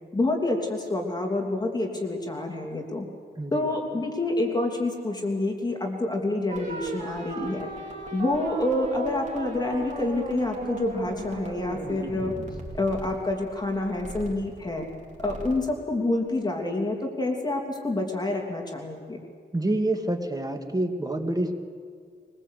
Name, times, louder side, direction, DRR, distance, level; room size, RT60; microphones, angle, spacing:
voice 1, 0.1-3.1 3.5-7.7 8.1-12.3 12.8-14.9 15.2-19.2, left 2 dB, 20° left, 1 dB, 3.0 m, -27 dB
sound 1, 6.5-15.7, right 3 dB, 40° right, 4.6 m, -36 dB
voice 2, 19.5-21.5, right 1 dB, 20° right, 5 dB, 2.2 m, -27 dB
22.5 x 21.5 x 8.4 m, 2.1 s
wide cardioid pair, 110°, 18 cm